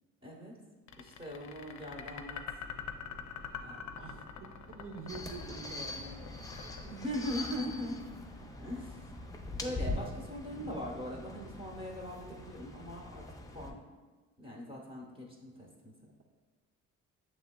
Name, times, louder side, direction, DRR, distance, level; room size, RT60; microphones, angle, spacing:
voice 1, 0.2-0.5 1.0-2.6 3.6-4.0 6.8-8.0 8.6-9.0 9.6-13.2 13.5-13.8 14.4-15.9, equal, 15° right, -1 dB, 1.0 m, -41 dB
sound 1, 0.9-8.0, left 8 dB, 70° left, 0.4 m, -44 dB
sound 2, 2.6-9.6, equal, 75° right, 1.0 m, -56 dB
voice 2, 4.7-6.8, right 4 dB, 45° right, 5 dB, 0.6 m, -46 dB
sound 3, 5.1-13.7, left 2 dB, 10° left, 0.5 m, -43 dB
6.8 x 3.1 x 2.2 m, 1.3 s
cardioid pair, 90°, 30 cm